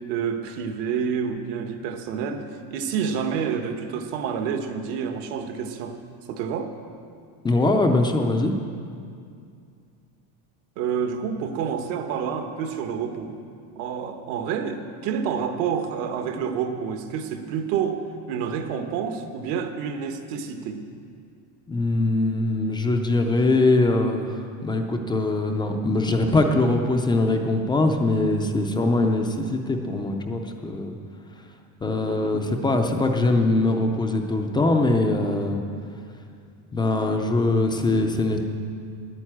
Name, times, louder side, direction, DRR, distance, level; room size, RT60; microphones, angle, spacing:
voice 1, 0.1-6.0 6.3-6.7 10.8-13.3 13.7-20.8 32.0-32.4, right 7 dB, 75° right, 7 dB, 1.3 m, -28 dB
voice 2, 7.4-8.5 21.7-30.9 31.8-35.6 36.7-38.4, left 2 dB, 10° left, 4 dB, 0.3 m, -22 dB
10.5 x 9.2 x 8.7 m, 2.3 s
cardioid pair, 170°, 45 cm